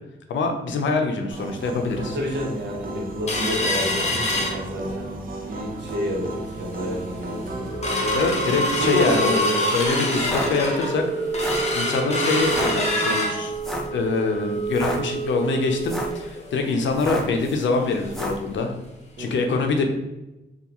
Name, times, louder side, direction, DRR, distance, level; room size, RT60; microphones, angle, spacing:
voice 1, 0.3-2.2 8.1-9.4 9.7-11.0 11.7-13.5 13.9-18.7 19.2-19.9, left 4 dB, 85° left, 4 dB, 0.5 m, -24 dB
sound 1, 1.3-9.2, right 2 dB, 50° right, 0.5 m, -34 dB
voice 2, 2.1-7.7 8.7-9.6 19.2-19.5, equal, 70° right, -2 dB, 0.9 m, -29 dB
sound 2, 3.3-5.1 5.5-5.6 6.0-6.3 6.8-6.9 7.3-17.8 18.1-18.2 18.6-18.8 19.3-19.4, equal, 35° left, 0.8 m, -26 dB
sound 3, 10.2-10.5 11.2-11.7 12.4-12.7 13.6-13.9 14.6-15.0 15.7-16.2 16.9-17.4 18.1-18.4, left 1 dB, ahead, 0.6 m, -30 dB
3.4 x 2.4 x 2.9 m, 0.97 s
cardioid pair, 65°, 19 cm